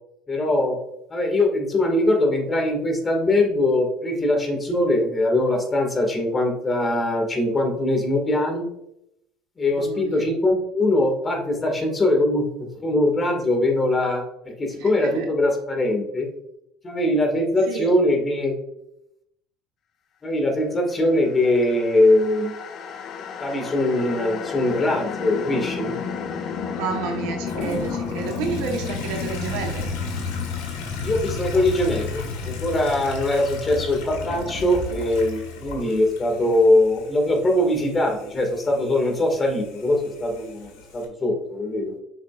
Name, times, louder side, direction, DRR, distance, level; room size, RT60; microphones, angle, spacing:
voice 1, 0.3-0.8 1.1-8.7 9.6-16.3 16.8-18.5 20.2-22.5 23.4-26.0 31.0-41.9, left 1 dB, 25° left, 2 dB, 2.1 m, -22 dB
voice 2, 9.7-10.3 14.7-15.3 17.7-17.9 26.7-29.9 35.8-36.0, right 6 dB, 75° right, 2 dB, 1.3 m, -31 dB
sound 1, 21.2-36.4, left 5 dB, 55° left, 1.0 m, -32 dB
Toilet flush, 27.5-41.1, left 3 dB, 80° left, 1.7 m, -39 dB
8.0 x 5.8 x 2.5 m, 0.80 s
hypercardioid pair, 80°, 0 cm